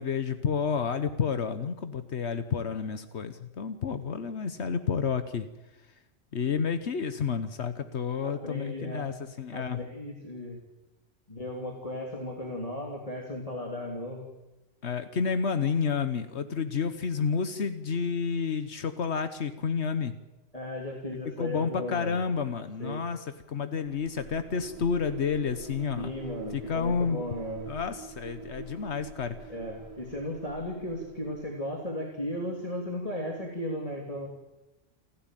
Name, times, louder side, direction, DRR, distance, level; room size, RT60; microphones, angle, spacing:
voice 1, 0.0-5.5 6.3-9.8 14.8-20.1 21.4-26.1 26.5-27.2 27.7-29.3, left 6 dB, 80° left, 10 dB, 1.4 m, -30 dB
voice 2, 8.2-9.2 9.5-10.6 11.3-14.3 20.5-22.2 22.8-23.0 26.0-27.7 29.5-34.3, left 1 dB, 35° left, 0 dB, 3.0 m, -36 dB
sound 1, 23.8-31.6, right 4 dB, 30° right, 1.9 m, -45 dB
29.0 x 11.5 x 9.1 m, 1.0 s
omnidirectional pair, 1.1 m